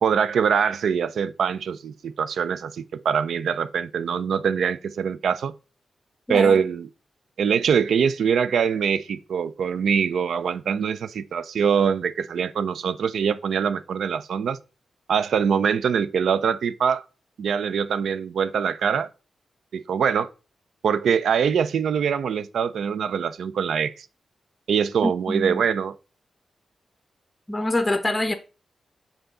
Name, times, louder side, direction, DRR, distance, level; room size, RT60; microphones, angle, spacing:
voice 1, 0.0-5.5 6.3-6.9 7.4-14.6 15.1-17.0 17.4-19.1 19.7-20.3 20.8-24.1 24.7-25.9, right 7 dB, 85° right, 0.4 m, -23 dB
voice 2, 6.3-6.6 25.0-25.6 27.5-28.3, left 1 dB, 15° left, 0.6 m, -25 dB
6.9 x 3.8 x 3.8 m
cardioid pair, 90°, 0 cm